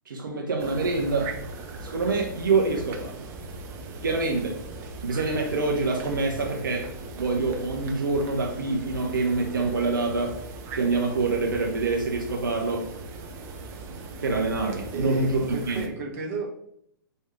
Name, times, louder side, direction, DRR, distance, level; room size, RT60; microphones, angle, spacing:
voice 1, 0.1-1.3 1.8-3.3 4.0-4.6 5.0-6.9 7.1-10.4 10.7-12.9 14.2-15.4 15.7-15.8, right 3 dB, 65° right, 1 dB, 0.7 m, -26 dB
sound 1, 0.6-15.9, right 3 dB, 25° right, 0.5 m, -39 dB
voice 2, 14.9-16.5, right 3 dB, 40° right, 1 dB, 0.9 m, -33 dB
4.7 x 2.6 x 3.6 m, 0.70 s
figure-of-eight pair, 115°, 12 cm